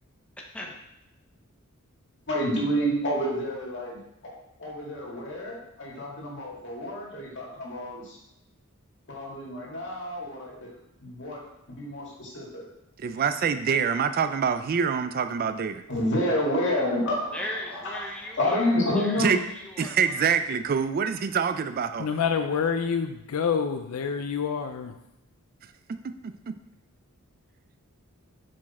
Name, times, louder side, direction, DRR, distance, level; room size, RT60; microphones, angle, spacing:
voice 1, 0.4-0.8 17.3-20.3, left 1 dB, 5° left, -1 dB, 0.8 m, -38 dB
voice 2, 2.3-4.0 4.2-4.3 4.6-8.2 9.1-10.7 11.0-12.6 15.9-17.4 17.7-18.0 18.4-19.3, equal, 55° left, -3 dB, 2.0 m, -29 dB
voice 3, 13.0-15.8 19.2-19.4 19.8-22.1 25.9-26.2 26.5-26.6, right 6 dB, 45° right, 11 dB, 0.3 m, -26 dB
voice 4, 22.0-25.0, left 6 dB, 85° left, 7 dB, 0.4 m, -27 dB
6.0 x 4.9 x 4.2 m, 0.89 s
head